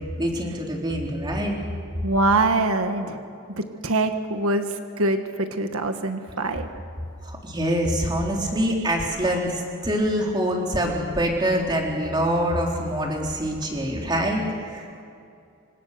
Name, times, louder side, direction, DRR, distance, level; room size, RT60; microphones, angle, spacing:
voice 1, 0.2-1.5 7.2-14.9, equal, 20° right, 0 dB, 3.6 m, -25 dB
voice 2, 2.0-3.2 3.5-6.7, right 2 dB, 85° right, 6 dB, 1.6 m, -24 dB
27.5 x 26.0 x 6.7 m, 2.5 s
head